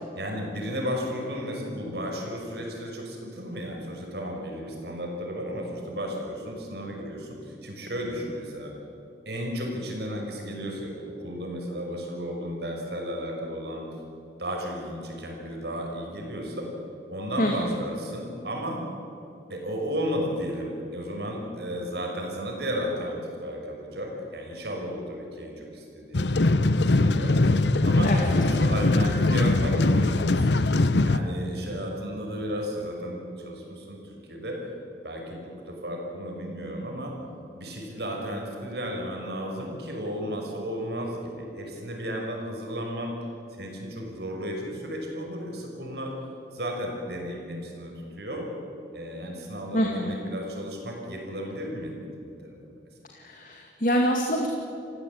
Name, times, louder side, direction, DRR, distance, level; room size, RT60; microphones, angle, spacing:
voice 1, 0.2-8.7 9.3-13.9 14.4-16.7 17.1-18.8 19.5-26.3 26.6-27.4 27.8-30.6 31.0-34.6 35.0-37.2 37.6-43.1 43.6-46.1 46.5-48.5 48.9-52.5, equal, 70° right, 0 dB, 5.9 m, -34 dB
voice 2, 17.4-17.7 28.0-28.3 49.7-50.2 53.2-54.5, equal, 45° left, 1 dB, 2.2 m, -26 dB
sound 1, 26.1-31.2, left 2 dB, 80° left, 1.0 m, -21 dB
29.5 x 16.0 x 8.7 m, 2.8 s
head